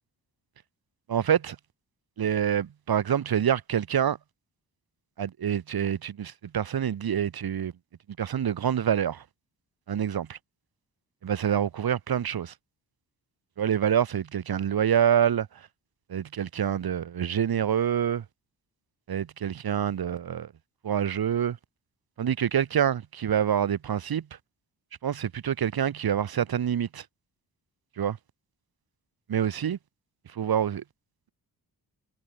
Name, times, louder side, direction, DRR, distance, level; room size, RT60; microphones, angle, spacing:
voice 1, 1.1-1.6 2.2-4.2 5.2-7.7 8.2-9.2 9.9-10.4 11.2-12.5 13.6-15.5 16.1-18.2 19.1-20.5 20.8-21.6 22.2-24.3 25.0-27.0 28.0-28.2 29.3-29.8 30.3-30.8, right 9 dB, 65° right, 1.9 m, -26 dB
cardioid pair, 65°, 40 cm